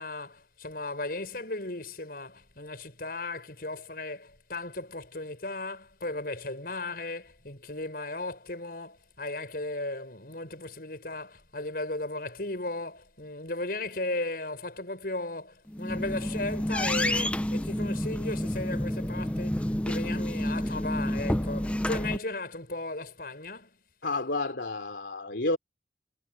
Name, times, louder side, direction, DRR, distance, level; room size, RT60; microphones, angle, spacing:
voice 1, 0.0-23.8, left 2 dB, 55° left, 6.4 m, -36 dB
sound 1, 15.7-22.2, left 1 dB, 5° left, 0.5 m, -29 dB
voice 2, 24.0-25.6, left 2 dB, 75° left, 2.9 m, -30 dB
head